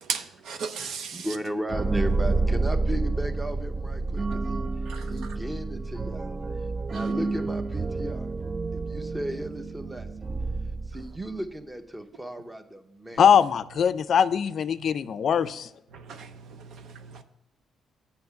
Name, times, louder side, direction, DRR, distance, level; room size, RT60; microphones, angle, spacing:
voice 1, 0.0-1.3 4.9-5.1 6.9-7.0 15.9-17.2, right 6 dB, 75° right, 0.7 m, -36 dB
voice 2, 1.1-4.7 5.1-6.2 6.9-8.3 8.7-10.1 10.9-13.2, equal, 15° right, 0.8 m, -35 dB
sound 1, 1.7-11.4, right 3 dB, 30° right, 0.3 m, -29 dB
voice 3, 13.2-15.7, left 8 dB, 60° left, 0.4 m, -21 dB
7.8 x 5.6 x 5.8 m
cardioid pair, 90°, 0 cm